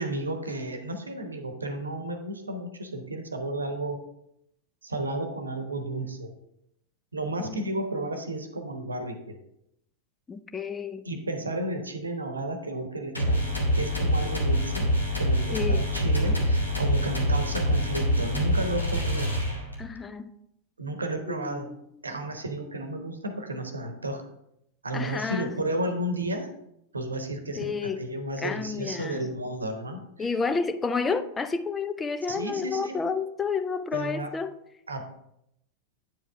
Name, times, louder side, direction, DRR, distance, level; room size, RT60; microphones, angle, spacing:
voice 1, 0.0-4.0 4.8-6.3 7.1-9.4 11.0-14.9 15.2-19.3 20.8-21.7 22.0-24.3 24.8-26.5 26.9-30.3 32.3-33.0 33.9-34.3 34.9-35.1, right 1 dB, 75° right, 0.9 m, -33 dB
voice 2, 10.3-11.0 15.5-15.8 19.8-20.3 21.3-21.8 24.9-25.5 27.6-28.0 28.4-29.3 30.2-34.5, left 5 dB, 15° left, 0.4 m, -30 dB
sound 1, 13.1-19.9, equal, 85° left, 1.5 m, -25 dB
9.1 x 4.9 x 3.4 m
figure-of-eight pair, 90°, 0 cm